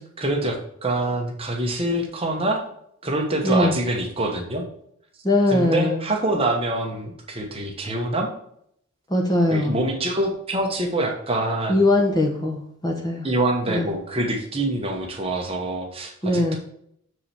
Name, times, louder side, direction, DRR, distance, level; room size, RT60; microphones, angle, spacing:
voice 1, 0.0-2.6 3.0-4.6 5.5-8.3 9.5-11.8 13.2-16.6, right 1 dB, 25° right, 2 dB, 1.0 m, -25 dB
voice 2, 3.4-3.7 5.2-6.0 9.1-9.8 11.7-13.3 13.7-13.9 16.2-16.6, left 1 dB, 15° left, 1 dB, 1.0 m, -21 dB
6.9 x 4.8 x 4.4 m, 0.70 s
head